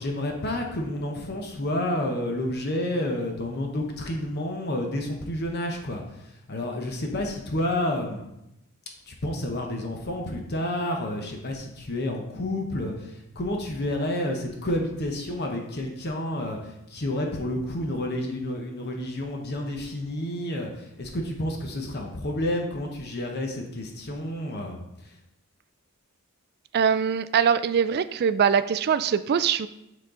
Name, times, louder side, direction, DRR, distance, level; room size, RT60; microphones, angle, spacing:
voice 1, 0.0-8.2 9.1-25.1, left 1 dB, 45° left, 2 dB, 0.9 m, -30 dB
voice 2, 26.7-29.7, right 7 dB, 45° right, 14 dB, 0.3 m, -22 dB
9.4 x 4.0 x 3.8 m, 0.86 s
head